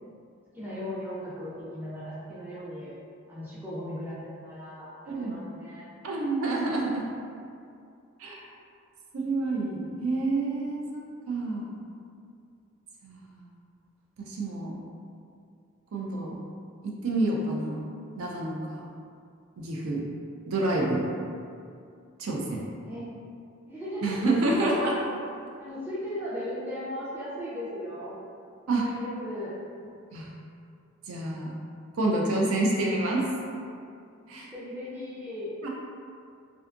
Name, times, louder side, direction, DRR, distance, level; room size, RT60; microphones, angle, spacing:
voice 1, 0.5-2.9 3.3-5.9 22.8-23.1 23.7-24.2 25.6-28.2 28.8-29.6 34.5-35.5, left 1 dB, 10° right, -10 dB, 0.4 m, -37 dB
voice 2, 5.0-5.4 6.0-7.1 8.2-8.4 9.1-11.7 13.0-13.3 14.3-14.7 15.9-16.4 16.8-17.8 18.2-18.8 19.6-20.0 20.5-21.0 22.2-22.6 24.0-25.0 28.7-28.9 30.1-30.3 31.1-31.5 32.0-33.3 34.3-34.5 35.6-35.7, right 2 dB, 80° right, -2 dB, 0.4 m, -28 dB
2.6 x 2.3 x 2.4 m, 2.4 s
head